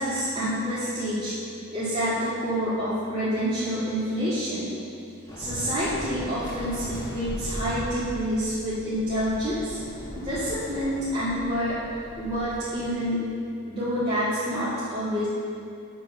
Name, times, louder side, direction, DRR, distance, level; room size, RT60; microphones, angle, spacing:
voice 1, 0.0-1.3 1.7-4.7 5.4-9.8 10.2-11.8 12.2-13.2 13.7-15.3, equal, 30° right, -14 dB, 2.0 m, -27 dB
Waves surf, 5.3-12.9, equal, 20° left, 1.6 m, -38 dB
9.2 x 5.3 x 6.4 m, 2.5 s
head